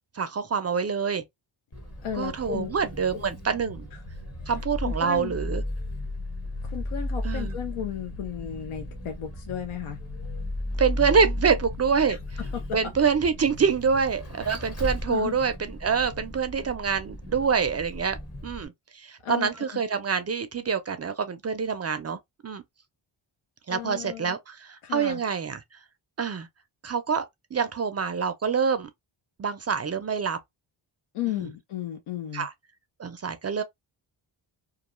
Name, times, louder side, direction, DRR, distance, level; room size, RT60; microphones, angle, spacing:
voice 1, 0.2-1.2 2.2-3.9 4.5-5.6 7.2-7.6 10.8-12.2 12.7-18.2 18.4-22.6 23.7-25.6 26.2-26.5 26.8-27.3 27.5-28.9 29.4-30.4 31.3-31.4 32.3-32.5 33.0-33.6, right 6 dB, 35° right, 0.4 m, -26 dB
Vehicle, 1.7-18.6, left 1 dB, 30° left, 1.1 m, -35 dB
voice 2, 2.0-2.8 3.1-3.3 3.9-4.0 4.4-4.6 4.8-5.3 6.6-10.0 12.1-12.2 12.5-12.8 15.1-15.4 19.2-19.8 23.7-24.4 24.8-25.2 31.1-32.5, left 10 dB, 90° left, 0.6 m, -34 dB
2.4 x 2.2 x 3.0 m
cardioid pair, 90°, 49 cm